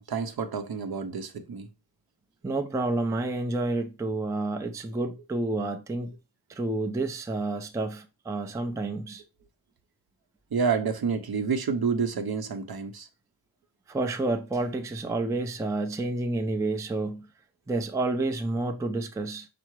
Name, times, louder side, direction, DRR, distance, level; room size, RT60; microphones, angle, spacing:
voice 1, 0.0-1.7 10.5-13.1, right 5 dB, 50° right, 0.7 m, -29 dB
voice 2, 2.4-6.1 6.5-9.2 13.9-17.3 17.7-19.5, right 2 dB, 5° right, 0.4 m, -29 dB
5.6 x 2.0 x 4.5 m
wide cardioid pair, 110°, 47 cm